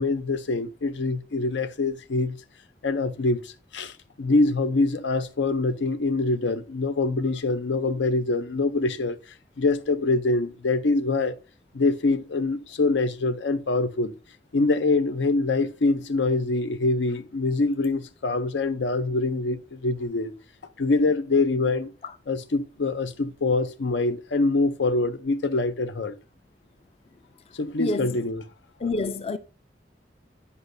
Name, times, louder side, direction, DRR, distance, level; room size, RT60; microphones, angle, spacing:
voice 1, 0.0-2.4 2.8-9.2 9.6-11.4 11.7-14.1 14.5-20.3 20.8-21.9 22.3-26.1 27.5-28.4, left 3 dB, 85° left, 0.6 m, -24 dB
voice 2, 28.8-29.4, left 3 dB, 35° left, 0.4 m, -27 dB
9.7 x 5.5 x 2.6 m
head